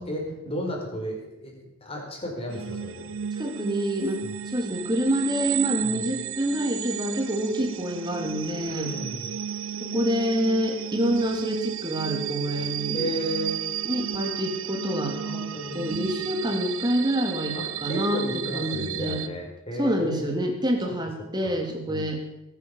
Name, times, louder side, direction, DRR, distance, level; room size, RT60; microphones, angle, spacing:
voice 1, 0.0-3.2 4.2-4.3 5.8-6.0 8.6-9.3 12.9-13.6 15.2-15.9 17.5-20.3 21.2-21.6 21.9-22.1, equal, 25° left, 0 dB, 5.2 m, -34 dB
sound 1, 2.5-19.3, right 9 dB, 70° right, 0.8 m, -33 dB
voice 2, 3.4-8.9 9.8-13.0 13.8-15.2 15.7-19.2 19.8-22.2, equal, 20° right, 3 dB, 2.9 m, -27 dB
20.5 x 9.3 x 7.4 m, 0.86 s
head